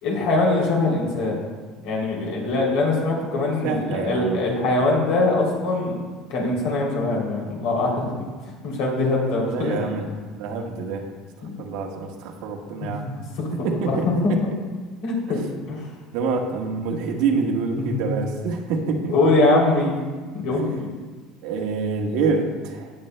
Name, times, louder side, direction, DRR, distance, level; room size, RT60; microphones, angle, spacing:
voice 1, 0.0-1.4 1.8-6.0 6.3-8.1 8.6-9.8 11.4-11.6 12.8-12.9 13.4-13.5 13.8-14.3 15.0-15.4 15.7-15.8 17.9-18.0 19.1-19.9 20.3-20.9, left 2 dB, 70° left, -2 dB, 3.0 m, -22 dB
voice 2, 3.6-4.4 9.5-11.1 11.6-13.1 13.6-14.4 15.3-15.4 16.1-19.2 20.5-20.6 21.4-22.9, right 4 dB, 75° right, 2 dB, 1.4 m, -26 dB
17.5 x 7.1 x 2.2 m, 1.4 s
cardioid pair, 145°, 0 cm